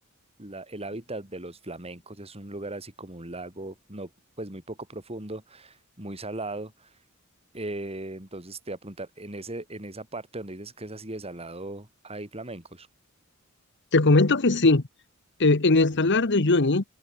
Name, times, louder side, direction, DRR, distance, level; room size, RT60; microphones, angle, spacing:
voice 1, 0.4-4.1 4.4-6.9 7.5-12.9 15.9-16.2, right 2 dB, 30° right, 4.7 m, -38 dB
voice 2, 13.9-14.8 15.4-16.8, left 3 dB, 55° left, 1.3 m, -20 dB
head